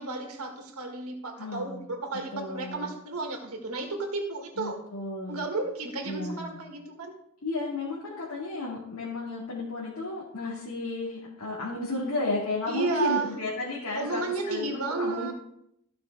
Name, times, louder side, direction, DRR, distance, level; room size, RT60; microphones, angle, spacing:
voice 1, 0.0-4.8 5.3-7.2 12.7-13.3 13.9-15.3, right 3 dB, 85° right, 2 dB, 1.8 m, -32 dB
voice 2, 1.4-1.8 2.3-2.9 4.6-5.4 6.0-6.6 7.4-15.3, left 2 dB, 85° left, -6 dB, 2.5 m, -33 dB
14.5 x 5.9 x 3.6 m, 0.75 s
head